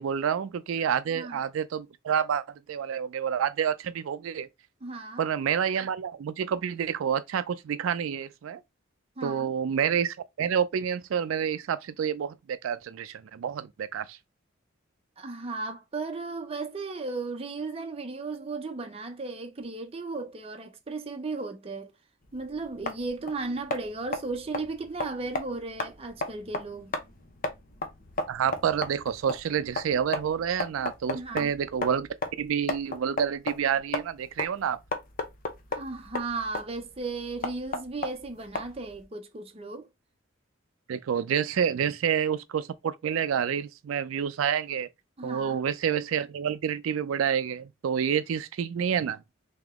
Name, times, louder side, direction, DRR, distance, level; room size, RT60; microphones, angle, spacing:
voice 1, 0.0-4.5 5.2-8.6 9.2-14.2 28.3-32.1 32.4-34.8 40.9-44.9 45.2-49.2, right 8 dB, 90° right, 0.4 m, -28 dB
voice 2, 1.1-1.4 4.8-5.2 9.2-9.5 15.2-21.9 22.3-26.9 31.1-31.5 35.7-39.9 45.2-45.6, right 3 dB, 30° right, 0.6 m, -35 dB
sound 1, 22.2-39.0, left 2 dB, 45° left, 0.7 m, -35 dB
3.4 x 2.9 x 3.5 m
head